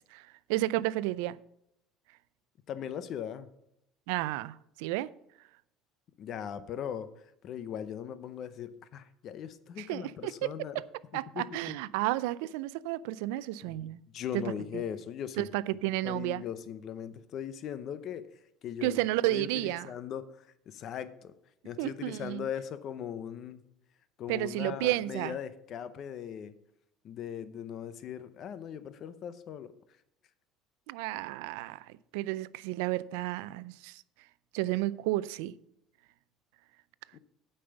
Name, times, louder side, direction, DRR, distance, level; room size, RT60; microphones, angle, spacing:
voice 1, 0.1-1.4 4.1-5.1 9.8-10.9 11.1-14.0 14.3-14.4 14.7-14.8 15.4-16.4 18.8-19.9 21.8-22.5 24.3-25.4 30.9-34.0 34.5-35.5, right 17 dB, 85° right, 0.4 m, -32 dB
voice 2, 2.7-3.5 6.2-7.1 7.4-10.8 11.3-11.8 13.7-15.5 16.0-18.3 18.6-20.3 20.7-21.3 21.6-23.6 24.2-26.5 27.0-29.7 37.1-37.2, left 9 dB, 45° left, 0.7 m, -39 dB
8.6 x 5.5 x 6.9 m
cardioid pair, 140°, 0 cm